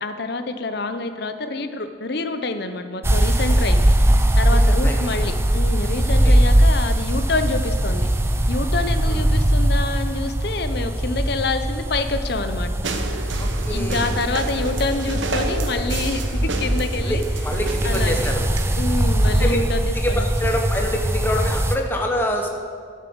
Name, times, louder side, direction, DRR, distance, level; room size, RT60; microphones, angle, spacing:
voice 1, 0.0-3.9 4.3-8.1 8.5-12.7 13.7-17.2 17.8-18.1 18.8-20.2, left 3 dB, 55° left, 9 dB, 0.7 m, -27 dB
sound 1, 3.0-21.8, right 1 dB, 15° right, 0.5 m, -21 dB
voice 2, 4.5-5.1 6.2-6.4 9.0-9.2 13.4-14.1 17.0-18.4 19.3-19.6 19.9-22.5, equal, 10° left, 1 dB, 0.9 m, -26 dB
sound 2, 12.8-19.7, right 2 dB, 70° right, 0.9 m, -30 dB
11.5 x 7.4 x 6.2 m, 2.1 s
head